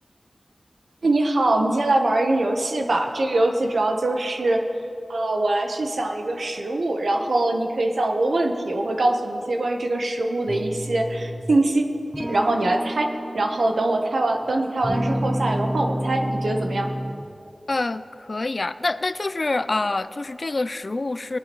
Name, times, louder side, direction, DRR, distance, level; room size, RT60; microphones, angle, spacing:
voice 1, 1.0-4.6 5.1-11.8 12.2-16.9, right 2 dB, 85° right, 3 dB, 1.0 m, -23 dB
sound 1, 10.5-11.6 12.1-14.4 14.8-17.4, equal, 20° right, 0.7 m, -30 dB
voice 2, 17.7-21.4, left 2 dB, 50° left, 14 dB, 0.4 m, -26 dB
20.0 x 11.0 x 3.1 m, 2.7 s
wide cardioid pair, 65°, 0 cm